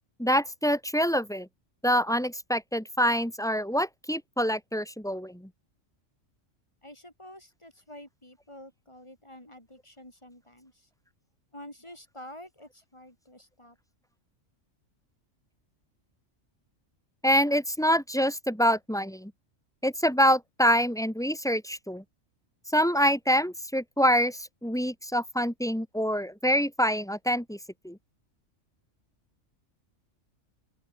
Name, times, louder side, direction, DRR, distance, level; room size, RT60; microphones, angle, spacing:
voice 1, 0.2-1.5 1.8-5.5 17.2-19.3 19.8-22.0 22.7-27.6 27.8-28.0, equal, ahead, 2.3 m, -26 dB
voice 2, 6.8-10.9 11.5-13.8, left 1 dB, 20° left, 5.5 m, -48 dB
open air
omnidirectional pair, 1.3 m